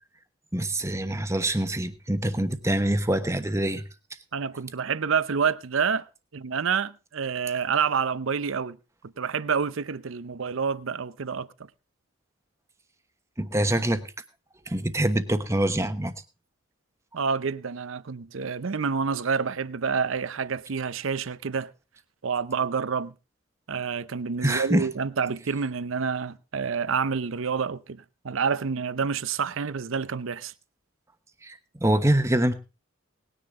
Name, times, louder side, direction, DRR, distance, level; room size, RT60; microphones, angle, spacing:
voice 1, 0.5-3.8 13.4-14.0 14.7-16.1 24.4-24.9 31.4-32.5, right 1 dB, 15° right, 1.0 m, -25 dB
voice 2, 4.3-6.1 6.3-8.8 9.0-11.5 17.1-21.7 22.2-23.1 23.7-30.5, right 6 dB, 70° right, 0.6 m, -28 dB
19.0 x 10.0 x 3.7 m
head